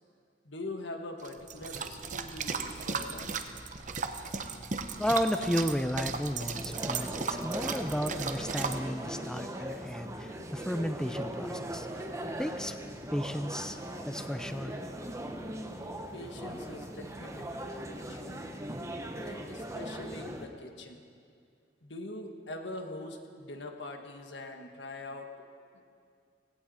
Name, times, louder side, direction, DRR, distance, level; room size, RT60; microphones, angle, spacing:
voice 1, 0.4-3.4 5.4-5.5 10.4-10.7 16.1-18.6 19.2-21.0 21.8-25.3, left 2 dB, 85° left, 4 dB, 1.5 m, -43 dB
sound 1, 1.2-8.8, right 5 dB, 45° right, 0.8 m, -36 dB
voice 2, 5.0-11.9 12.4-12.7 13.1-13.8 14.1-14.8, equal, 5° left, 8 dB, 0.4 m, -33 dB
sound 2, 6.5-20.5, right 1 dB, 15° right, 0.9 m, -39 dB
17.0 x 16.5 x 4.3 m, 2.3 s
head